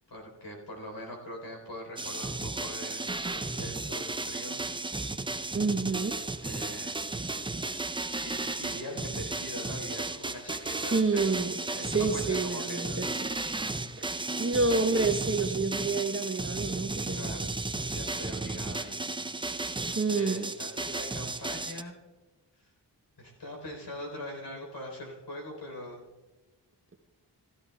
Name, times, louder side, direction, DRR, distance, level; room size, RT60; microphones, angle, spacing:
voice 1, 0.1-4.6 6.4-7.0 8.2-11.4 11.7-13.1 17.1-17.5 17.9-22.0 23.2-26.0, left 1 dB, 70° left, 1 dB, 3.9 m, -42 dB
sound 1, 2.0-21.8, right 2 dB, 10° right, 0.5 m, -34 dB
voice 2, 5.5-6.1 10.9-13.1 14.0-14.1 14.4-17.5 20.0-20.5, right 3 dB, 30° right, 7 dB, 0.9 m, -28 dB
16.0 x 13.5 x 2.3 m, 1.2 s
cardioid pair, 60°, 43 cm